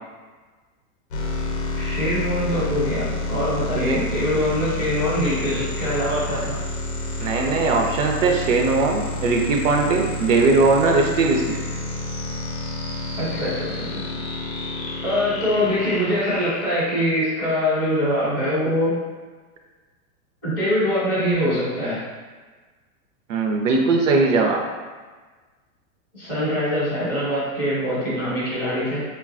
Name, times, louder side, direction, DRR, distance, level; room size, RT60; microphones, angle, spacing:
sound 1, 1.1-17.6, left 2 dB, 50° left, 0.6 m, -29 dB
voice 1, 1.7-6.6 13.2-14.1 15.0-19.0 20.4-22.0 26.1-29.0, equal, 10° right, -19 dB, 0.3 m, -23 dB
voice 2, 7.2-11.6 23.3-24.7, right 3 dB, 60° right, 1 dB, 0.5 m, -20 dB
3.2 x 2.2 x 2.4 m, 1.4 s
supercardioid pair, 175°, 44 cm